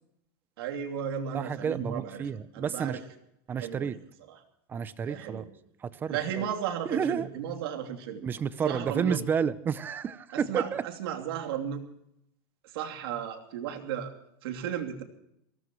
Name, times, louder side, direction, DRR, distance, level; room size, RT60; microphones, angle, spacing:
voice 1, 0.6-3.0 3.6-4.0 4.3-4.4 5.0-5.5 6.1-8.2 8.6-9.2 10.3-11.8 12.6-14.1 14.4-15.0, right 8 dB, 75° right, 4 dB, 3.0 m, -34 dB
voice 2, 1.3-3.0 3.5-4.0 4.7-5.4 5.8-6.5 6.9-7.3 8.2-10.8, right 7 dB, 15° right, 16 dB, 0.5 m, -31 dB
24.0 x 18.0 x 3.1 m, 0.76 s
supercardioid pair, 175°, 13 cm